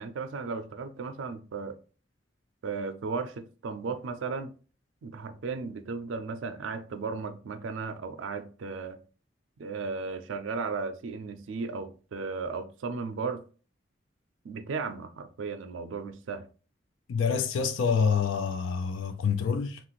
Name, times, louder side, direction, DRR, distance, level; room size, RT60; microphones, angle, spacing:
voice 1, 0.0-1.8 2.6-4.5 5.0-9.0 9.6-13.4 14.4-16.4, right 4 dB, 90° right, 0.4 m, -35 dB
voice 2, 17.1-19.8, left 6 dB, 85° left, 0.3 m, -27 dB
2.9 x 2.4 x 3.0 m
head